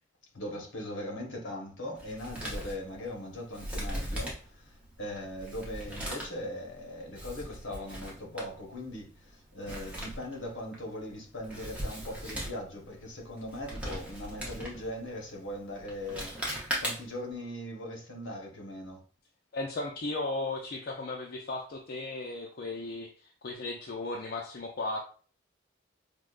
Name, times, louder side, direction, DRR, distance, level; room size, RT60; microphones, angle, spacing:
voice 1, 0.3-19.0, left 1 dB, 65° left, 1.0 m, -40 dB
Male speech man speaking, 2.0-17.3, equal, 5° right, 0.7 m, -40 dB
voice 2, 19.5-25.0, left 2 dB, 50° left, 0.4 m, -36 dB
4.8 x 2.1 x 2.3 m
head